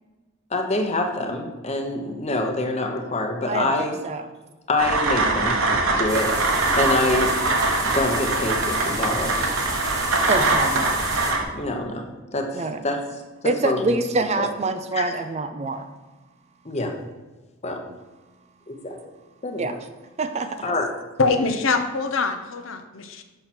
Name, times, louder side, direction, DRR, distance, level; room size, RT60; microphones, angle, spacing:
voice 1, 0.5-4.0 4.7-5.6 6.0-6.3 6.8-7.4 7.8-9.5 11.5-13.0 13.4-13.8 14.4-14.5 14.9-15.0 16.6-17.0 17.6-17.9 18.7-19.0 19.4-19.8 20.6-20.9, left 2 dB, 30° left, 3 dB, 0.9 m, -26 dB
voice 2, 3.5-4.3 5.8-6.0 10.3-11.0 12.5-12.8 13.4-15.9 18.9-19.0 19.6-19.7 20.2-20.6, right 3 dB, 30° right, 8 dB, 0.4 m, -26 dB
sound 1, 4.8-11.4, right 2 dB, 75° right, 1.1 m, -22 dB
sound 2, 6.1-11.3, right 2 dB, 15° right, 1.1 m, -33 dB
voice 3, 21.2-23.2, left 4 dB, 65° left, 7 dB, 0.7 m, -23 dB
6.7 x 5.9 x 4.3 m, 1.2 s
head